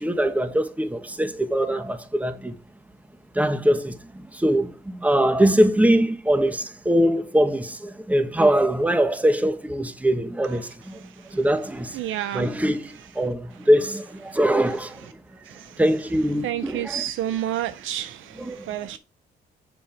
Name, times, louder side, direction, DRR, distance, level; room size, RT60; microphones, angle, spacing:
voice 1, 0.0-2.6 3.3-11.0 11.3-12.0 12.3-15.1 15.8-17.0 18.4-19.0, right 1 dB, 5° right, 1.1 m, -22 dB
voice 2, 11.9-12.5 16.4-18.2 18.7-19.0, right 12 dB, 80° right, 0.6 m, -28 dB
7.6 x 5.5 x 4.4 m
cardioid pair, 90°, 20 cm